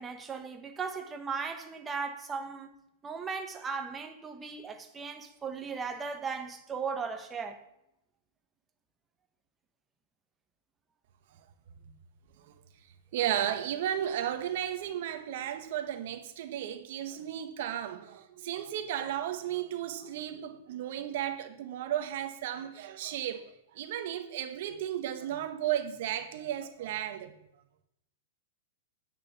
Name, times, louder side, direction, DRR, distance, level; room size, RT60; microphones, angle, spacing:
voice 1, 0.0-2.7 3.0-7.6, right 5 dB, 10° right, 1.1 m, -37 dB
voice 2, 13.1-27.3, right 11 dB, 45° right, 1.3 m, -34 dB
9.6 x 9.0 x 7.2 m
supercardioid pair, 180°, 0 cm